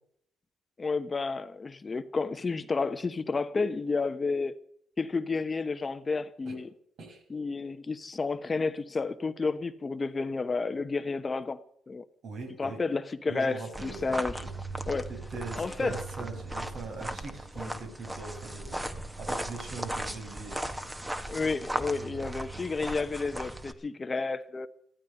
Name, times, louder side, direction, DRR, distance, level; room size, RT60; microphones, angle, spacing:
voice 1, 0.8-4.5 5.0-6.7 7.3-12.0 12.6-14.4 14.9-15.1 15.6-16.0 17.6-17.7 21.3-24.7, left 4 dB, 30° left, 1.0 m, -31 dB
voice 2, 12.2-12.8 13.3-14.0 14.3-14.5 15.1-18.9 19.2-20.7, right 3 dB, 65° right, 6.2 m, -41 dB
sound 1, 13.7-23.7, right 1 dB, 10° right, 1.5 m, -37 dB
15.0 x 13.0 x 6.6 m
cardioid pair, 90°, 0 cm